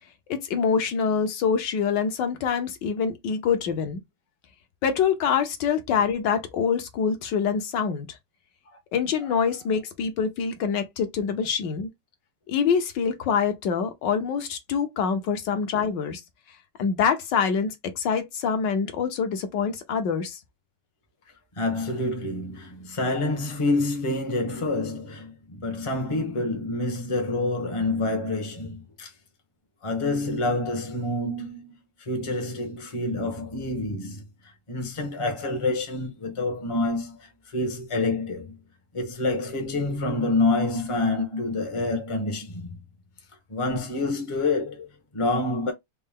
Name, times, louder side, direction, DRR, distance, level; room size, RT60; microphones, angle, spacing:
voice 1, 0.3-4.0 4.8-8.2 8.9-11.9 12.5-16.2 16.8-20.4, left 6 dB, 70° left, 1.2 m, -25 dB
voice 2, 21.6-29.1 29.8-31.7 32.0-34.2 34.7-38.6 38.9-42.8 43.5-45.7, left 2 dB, 35° left, 0.4 m, -27 dB
4.3 x 2.1 x 3.5 m
omnidirectional pair, 2.4 m